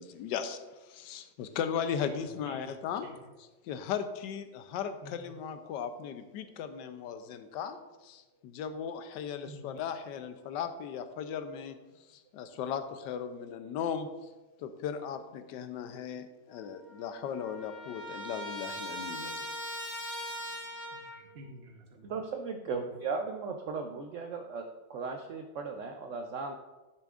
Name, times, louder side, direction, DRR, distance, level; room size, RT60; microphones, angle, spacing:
voice 1, 0.0-3.1 3.6-11.8 12.1-14.1 14.6-19.5, left 7 dB, 75° left, 10 dB, 1.2 m, -37 dB
voice 2, 2.0-2.6 3.0-3.1 5.0-5.3 6.0-6.1 8.3-8.4 9.5-9.8 11.9-12.2 12.5-12.6 16.1-16.2 20.9-22.1 22.7-22.9, right 1 dB, 40° right, 1 dB, 1.0 m, -51 dB
Trumpet, 16.5-16.6 16.9-21.3, equal, 50° left, 2.3 m, -40 dB
voice 3, 22.0-26.5, right 4 dB, 90° right, 4 dB, 0.6 m, -37 dB
11.0 x 7.0 x 2.4 m, 1.1 s
omnidirectional pair, 2.0 m